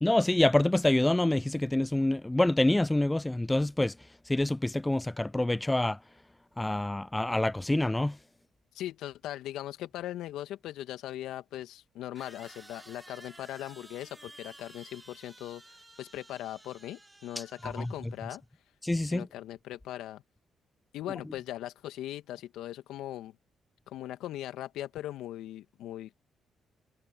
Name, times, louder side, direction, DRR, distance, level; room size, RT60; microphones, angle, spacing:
voice 1, 0.0-3.9 4.3-6.0 6.6-8.2 17.6-17.9 18.8-19.3, left 1 dB, 15° left, 0.4 m, -26 dB
voice 2, 8.7-18.4 19.0-20.2 20.9-23.4 23.9-26.2, left 13 dB, 75° left, 2.1 m, -40 dB
sound 1, 10.5-10.6 12.2-18.3, right 2 dB, 20° right, 5.9 m, -53 dB
hypercardioid pair, 45°, 0 cm